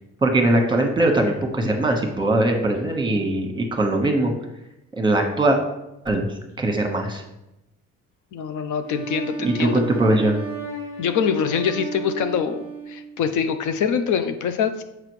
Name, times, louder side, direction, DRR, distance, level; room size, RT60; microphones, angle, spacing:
voice 1, 0.2-4.3 5.0-5.6 6.0-6.2 6.6-7.2 9.4-10.4, right 1 dB, 15° right, 3 dB, 1.2 m, -21 dB
voice 2, 8.3-9.8 11.0-14.8, left 7 dB, 75° left, 9 dB, 0.6 m, -24 dB
Wind instrument woodwind instrument, 8.9-13.2, right 3 dB, 45° left, 1.4 m, -33 dB
6.7 x 4.9 x 3.1 m, 0.90 s
cardioid pair, 90°, 30 cm